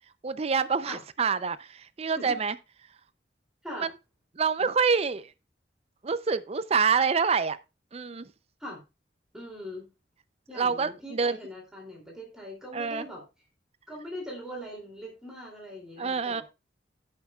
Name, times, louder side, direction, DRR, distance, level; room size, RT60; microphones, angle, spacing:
voice 1, 0.2-2.5 3.8-3.9 4.4-5.3 6.0-7.6 7.9-8.3 10.5-11.4 12.7-13.0 16.0-16.4, right 5 dB, 35° right, 0.5 m, -26 dB
voice 2, 9.3-9.9 10.5-13.2 13.9-16.4, equal, 5° right, 2.7 m, -41 dB
16.5 x 5.8 x 2.3 m
head